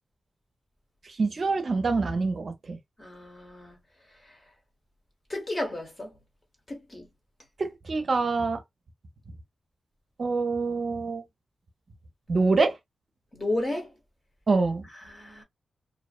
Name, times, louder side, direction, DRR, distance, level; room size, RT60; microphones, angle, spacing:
voice 1, 1.0-2.8 7.6-8.6 10.2-11.2 12.3-12.8 14.5-14.9, right 3 dB, 50° right, 0.5 m, -25 dB
voice 2, 3.0-3.8 5.3-6.1 6.7-7.1 13.3-13.9 15.0-15.4, left 1 dB, 25° left, 1.0 m, -32 dB
2.5 x 2.0 x 2.4 m
wide cardioid pair, 115°, 0 cm